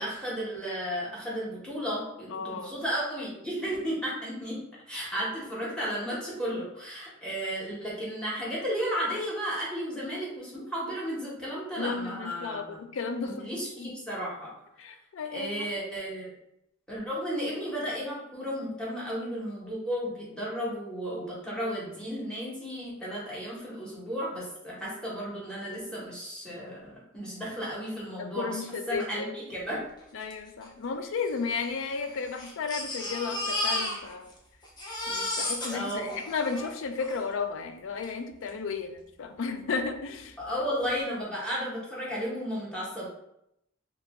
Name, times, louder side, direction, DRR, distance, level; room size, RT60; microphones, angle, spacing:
voice 1, 0.0-4.6 4.9-12.6 13.2-14.5 15.3-16.3 16.9-28.6 28.9-29.8 35.7-36.1 40.4-43.1, equal, 5° left, -6 dB, 1.1 m, -33 dB
voice 2, 2.3-2.7 11.8-13.5 13.8-13.9 14.8-15.7 28.2-29.3 30.1-34.3 35.1-40.4, left 5 dB, 65° left, 7 dB, 0.4 m, -34 dB
Crying sobbing, 30.3-30.4 30.6-30.7 31.5-34.4 34.6-37.2 38.0-38.1 38.5-38.6, left 1 dB, 20° left, 0.7 m, -33 dB
2.9 x 2.6 x 3.4 m, 0.80 s
head